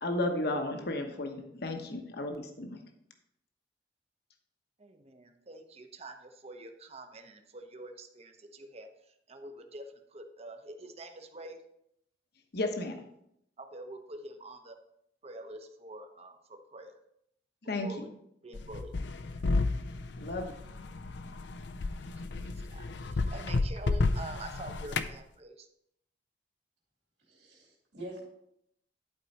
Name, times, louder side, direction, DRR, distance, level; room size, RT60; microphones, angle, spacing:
voice 1, 0.0-2.8 12.5-13.0 17.7-18.0 20.2-20.5, left 2 dB, 65° left, 4 dB, 1.1 m, -33 dB
voice 2, 4.8-8.9 9.3-9.8 10.1-11.6 13.6-14.7 15.2-16.9 17.8-18.1 18.4-18.9 22.4-25.7, right 2 dB, 35° right, 6 dB, 0.9 m, -46 dB
sound 1, 18.5-25.1, left 3 dB, 90° left, 0.6 m, -32 dB
voice 3, 27.3-28.3, right 1 dB, 75° right, -4 dB, 2.6 m, -45 dB
11.0 x 4.7 x 4.1 m, 0.76 s
head